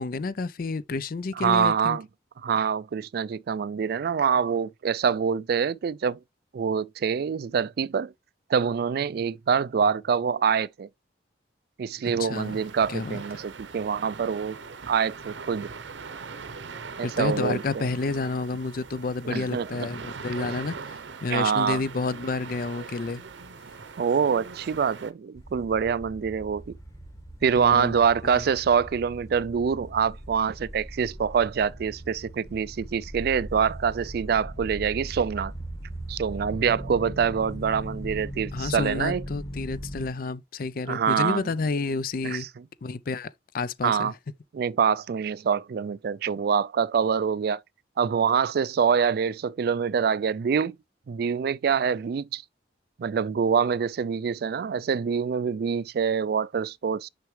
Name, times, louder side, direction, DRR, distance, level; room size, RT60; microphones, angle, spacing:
voice 1, 0.0-2.0 12.0-12.6 12.9-13.2 17.0-23.2 27.6-28.4 38.5-42.5 42.8-44.1, left 3 dB, 50° left, 0.5 m, -30 dB
voice 2, 1.4-2.1 2.4-6.2 6.5-8.1 8.5-10.9 11.8-14.6 14.9-15.7 17.0-17.9 19.2-19.9 21.3-21.8 24.0-26.8 27.4-35.5 36.1-39.2 40.9-41.4 42.2-42.5 43.8-44.1 44.5-47.6 48.0-50.8 51.1-52.4 53.0-57.1, right 6 dB, 55° right, 0.3 m, -25 dB
sound 1, 12.3-25.1, right 5 dB, 85° right, 0.8 m, -41 dB
sound 2, 25.4-40.1, right 1 dB, 20° left, 1.6 m, -39 dB
6.3 x 5.8 x 3.2 m
head